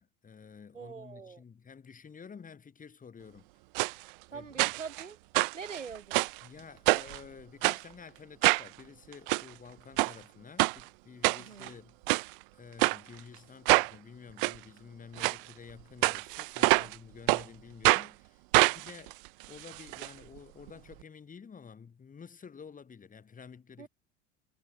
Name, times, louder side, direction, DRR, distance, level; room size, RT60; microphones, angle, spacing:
voice 1, 0.0-3.5 4.3-4.7 6.4-12.0 12.5-19.2 19.5-23.9, left 6 dB, 20° left, 5.5 m, -50 dB
voice 2, 0.7-1.4 4.3-5.2 5.5-6.3 11.3-11.7 16.6-16.9 23.8-23.9, right 5 dB, 80° right, 2.3 m, -44 dB
sound 1, 3.8-3.9 4.6-5.0 5.3-6.4 6.9-7.2 7.6-7.8 8.4-8.7 9.1-9.4 10.0-10.1 10.6-10.8 11.2-11.7 12.1-12.3 12.8-13.0 13.7-13.9 14.4-14.5 15.2-15.4 16.0-17.0 17.3-17.4 17.8-18.1 18.5-20.1 20.4-20.5 20.7-20.8, right 28 dB, 45° right, 0.6 m, -25 dB
figure-of-eight pair, 75°, 37 cm